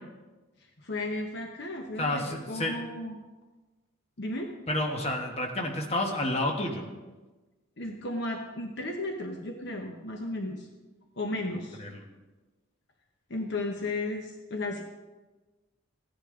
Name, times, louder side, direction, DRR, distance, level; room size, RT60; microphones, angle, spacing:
voice 1, 0.8-3.2 4.2-4.5 7.8-10.7 11.2-11.8 13.3-14.8, left 2 dB, 55° left, 2 dB, 1.0 m, -34 dB
voice 2, 2.0-2.7 4.7-6.9 11.8-12.0, left 1 dB, 30° left, 2 dB, 1.3 m, -30 dB
15.5 x 10.0 x 3.8 m, 1.2 s
head